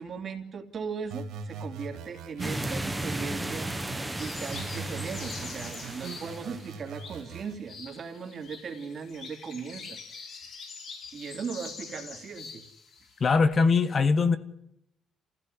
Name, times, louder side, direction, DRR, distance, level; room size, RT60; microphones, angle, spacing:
voice 1, 0.0-3.7 4.1-10.6 11.1-12.6, right 5 dB, 40° right, 3.1 m, -38 dB
sound 1, 1.1-4.1 4.5-7.5, right 5 dB, 80° right, 2.2 m, -41 dB
sound 2, 2.4-6.7, right 1 dB, 5° right, 1.6 m, -35 dB
sound 3, 4.1-13.4, left 5 dB, 50° left, 4.7 m, -45 dB
voice 2, 13.2-14.4, left 4 dB, 35° left, 1.3 m, -21 dB
28.0 x 16.0 x 9.9 m
cardioid pair, 150°, 0 cm